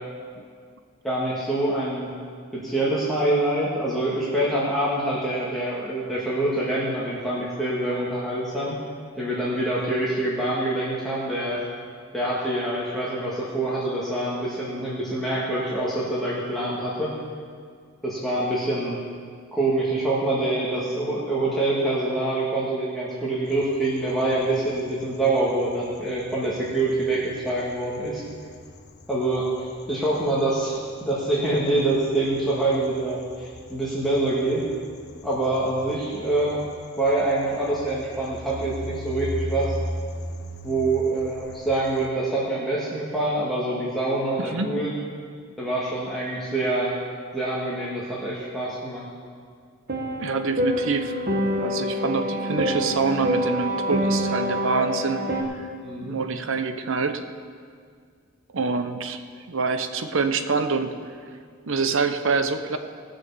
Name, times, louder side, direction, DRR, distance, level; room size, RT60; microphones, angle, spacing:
voice 1, 1.0-2.1 2.5-8.8 9.1-11.6 12.1-17.1 18.0-19.0 19.5-28.2 29.1-34.6 35.2-36.6 37.0-39.7 40.6-44.9 45.6-46.9 47.3-49.0 55.8-56.2, right 2 dB, ahead, -8 dB, 1.7 m, -25 dB
sound 1, 23.5-42.1, left 1 dB, 50° left, 1.0 m, -39 dB
voice 2, 44.4-44.7 50.2-51.2 51.6-55.2 55.6-55.7 56.0-57.2 58.5-59.2 59.5-60.9 61.7-62.8, right 4 dB, 65° right, 9 dB, 0.8 m, -26 dB
sound 2, 49.9-55.4, equal, 45° right, 1.4 m, -26 dB
18.0 x 6.3 x 6.9 m, 2.1 s
head